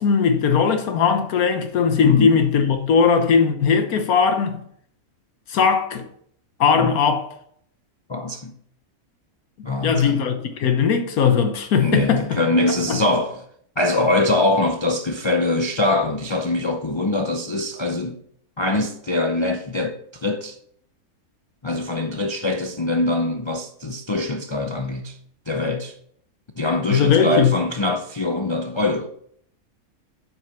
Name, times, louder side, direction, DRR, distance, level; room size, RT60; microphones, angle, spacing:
voice 1, 0.0-4.6 5.5-6.0 6.6-7.3 9.8-12.2 26.9-27.5, left 6 dB, 85° left, 1.4 m, -18 dB
voice 2, 2.0-2.4 6.8-7.0 8.1-8.5 9.6-10.2 11.8-13.4 13.8-18.2 18.6-20.6 21.6-25.2 25.5-26.0 26.6-29.1, left 2 dB, 35° left, 0.4 m, -23 dB
7.8 x 6.4 x 5.8 m
omnidirectional pair, 1.5 m